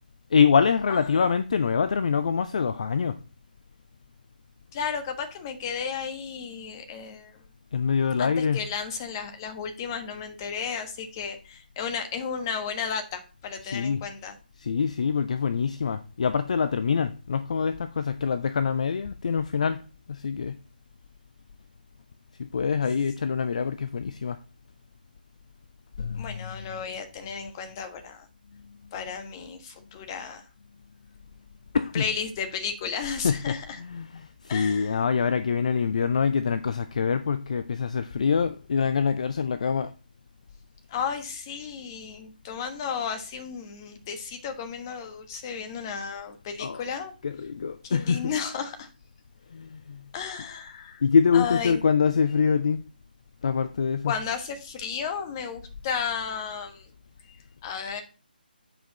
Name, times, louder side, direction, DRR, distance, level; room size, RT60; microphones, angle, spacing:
voice 1, 0.3-3.2 7.7-8.6 13.6-14.0 14.6-19.8 20.1-20.6 22.4-24.4 26.0-26.8 31.7-32.0 33.2-39.9 46.6-46.8 47.2-48.3 49.5-50.1 51.0-52.9 53.4-54.1, left 6 dB, 45° left, 0.5 m, -25 dB
voice 2, 0.9-1.3 4.7-7.4 8.2-14.3 26.2-28.3 28.9-30.5 31.9-33.8 34.5-35.0 40.9-47.1 47.8-48.9 50.1-51.0 51.3-51.8 54.0-56.9 57.3-57.4 57.6-58.0, left 6 dB, 25° left, 1.3 m, -33 dB
8.6 x 5.2 x 4.0 m
figure-of-eight pair, 145°, 5 cm